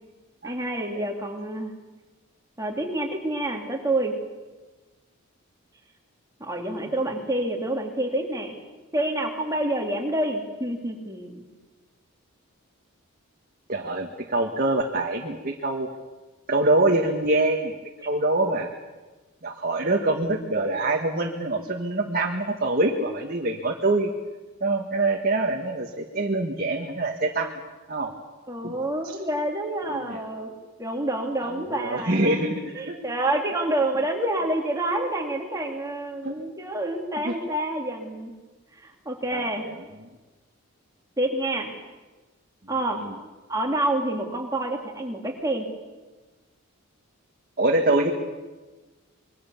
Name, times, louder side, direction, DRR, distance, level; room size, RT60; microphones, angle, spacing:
voice 1, 0.4-1.7 2.6-4.1 6.4-8.5 8.9-11.4 28.5-30.5 30.8-32.4 32.7-38.3 38.8-39.6 41.2-41.7 42.7-43.0 43.5-45.7, right 1 dB, 15° right, 1 dB, 3.1 m, -28 dB
voice 2, 13.7-15.9 16.5-17.8 18.1-18.7 19.4-24.1 24.6-27.5 27.9-28.1 28.6-28.8 29.0-29.2 29.9-30.2 31.4-33.0 36.2-36.3 37.2-37.3 39.3-39.8 43.0-43.2 47.6-48.1, right 2 dB, 40° right, 1 dB, 1.7 m, -25 dB
26.5 x 22.5 x 7.3 m, 1.2 s
head